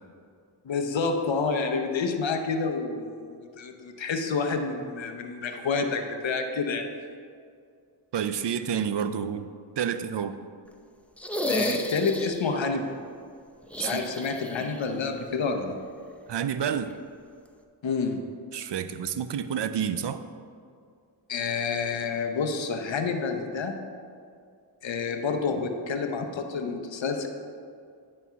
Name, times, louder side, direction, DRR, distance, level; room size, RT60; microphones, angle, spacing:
voice 1, 0.6-6.8 11.5-12.9 13.8-15.8 17.8-18.2 21.3-23.7 24.8-27.3, left 4 dB, 85° left, 5 dB, 0.8 m, -29 dB
voice 2, 8.1-9.5 9.8-10.4 13.8-14.0 16.3-16.9 18.5-20.2, right 8 dB, 70° right, 11 dB, 0.5 m, -29 dB
sound 1, 11.2-12.6 13.7-14.9 15.1-15.2 16.9-17.0, left 1 dB, 5° left, 0.6 m, -32 dB
9.4 x 4.3 x 5.7 m, 2.3 s
cardioid pair, 45°, 44 cm